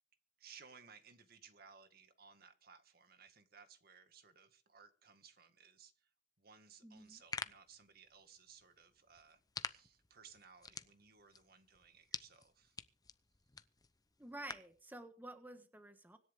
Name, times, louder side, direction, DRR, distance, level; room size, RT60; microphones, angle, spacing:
voice 1, 0.4-6.1 6.4-12.8, right 6 dB, 55° right, 2.0 m, -61 dB
voice 2, 6.8-7.2 14.2-16.2, right 1 dB, 10° right, 1.3 m, -51 dB
sound 1, 7.0-14.8, left 5 dB, 20° left, 0.7 m, -50 dB
25.0 x 10.5 x 3.7 m
head